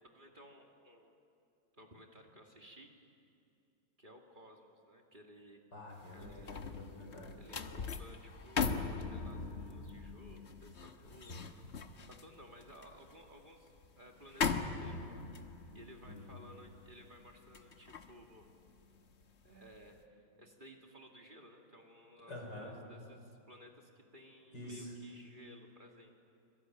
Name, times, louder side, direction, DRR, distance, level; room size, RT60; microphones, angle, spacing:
voice 1, 0.1-1.2 1.8-2.9 4.0-5.6 6.1-6.6 7.3-11.6 12.0-18.5 19.4-26.2, equal, 25° right, 1 dB, 2.4 m, -57 dB
voice 2, 5.7-7.3 16.0-16.4 22.3-22.7 24.5-24.9, left 1 dB, 55° left, 1 dB, 6.1 m, -47 dB
sound 1, 6.0-19.3 19.7-20.0, left 5 dB, 40° left, 1.1 m, -41 dB
25.5 x 23.0 x 9.2 m, 2.6 s
omnidirectional pair, 2.2 m